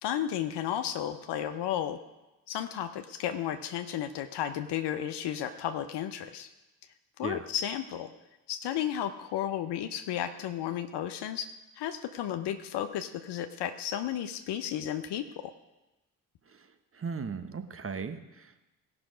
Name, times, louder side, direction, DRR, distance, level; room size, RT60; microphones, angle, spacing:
voice 1, 0.0-2.0 2.5-6.5 7.2-8.1 8.5-15.3, left 10 dB, 60° left, 8 dB, 0.9 m, -33 dB
voice 2, 16.9-18.6, right 5 dB, 30° right, 9 dB, 1.2 m, -37 dB
17.5 x 6.0 x 5.1 m, 1.0 s
hypercardioid pair, 45°, 46 cm